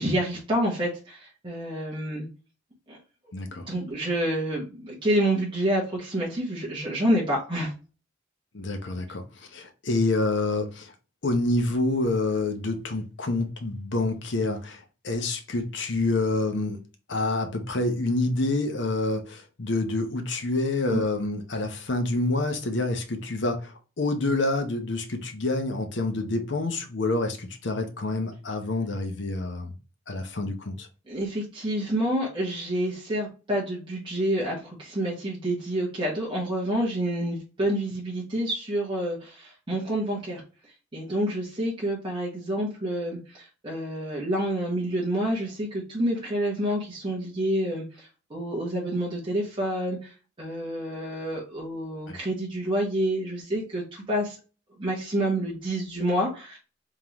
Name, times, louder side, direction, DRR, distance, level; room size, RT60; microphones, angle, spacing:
voice 1, 0.0-2.3 2.9-3.0 3.7-7.7 20.9-21.0 31.1-40.4 40.9-50.1 50.4-54.4 54.8-56.6, right 1 dB, 25° right, 1.3 m, -28 dB
voice 2, 3.3-3.6 8.5-10.9 11.2-16.8 17.1-29.7 30.1-30.9 52.1-52.2, left 2 dB, 65° left, 0.9 m, -27 dB
3.6 x 3.6 x 3.0 m
head